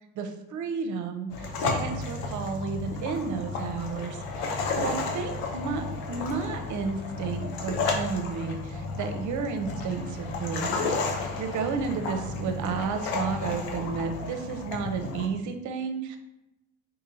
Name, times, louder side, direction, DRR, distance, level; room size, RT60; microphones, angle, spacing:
voice 1, 0.2-10.8 11.1-16.2, right 5 dB, 55° right, 7 dB, 0.6 m, -32 dB
sound 1, 1.3-15.3, left 3 dB, 90° left, 0.7 m, -32 dB
3.9 x 2.7 x 2.7 m, 0.92 s
supercardioid pair, 95°, 36 cm